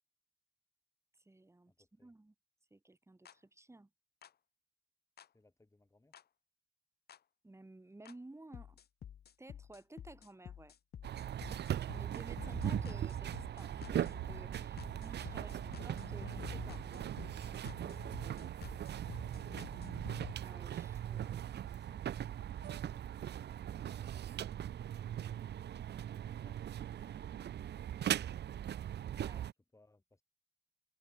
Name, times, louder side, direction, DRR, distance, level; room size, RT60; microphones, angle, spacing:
voice 1, 1.1-2.4 2.7-3.9 7.4-8.8 9.4-10.8 11.9-16.9 20.4-21.5 29.1-29.4, right 2 dB, 15° right, 7.0 m, -55 dB
voice 2, 1.7-2.1 5.3-6.1 14.7-15.0 15.4-15.8 21.5-25.1 26.3-28.7 29.7-30.2, left 2 dB, 15° left, 6.0 m, -70 dB
sound 1, 3.3-3.4 4.2-4.3 5.2-5.3 6.1-6.2 7.1-7.2 8.1-8.2 8.5-20.3, left 9 dB, 55° left, 1.2 m, -50 dB
sound 2, 11.0-29.5, right 10 dB, 60° right, 0.9 m, -40 dB
cardioid pair, 90°, 20 cm